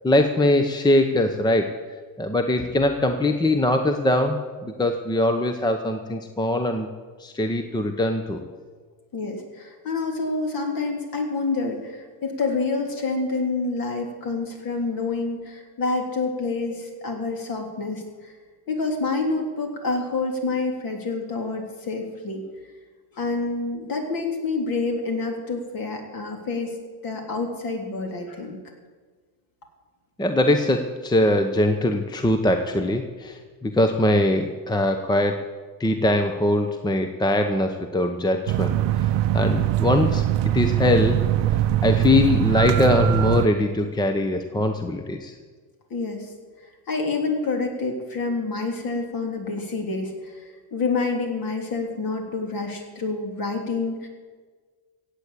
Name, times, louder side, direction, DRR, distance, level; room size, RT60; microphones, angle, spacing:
voice 1, 0.0-1.8 2.2-6.9 7.2-8.4 30.2-35.5 35.8-41.2 41.8-45.3, left 1 dB, 10° left, 6 dB, 0.9 m, -22 dB
voice 2, 9.1-18.3 18.7-22.4 23.2-26.8 27.0-28.6 45.9-46.3 46.9-50.4 50.7-54.1, left 3 dB, 45° left, 3 dB, 3.4 m, -27 dB
sound 1, 38.5-43.5, right 13 dB, 60° right, 0.8 m, -22 dB
16.0 x 8.3 x 8.3 m, 1.5 s
supercardioid pair, 110°, 48 cm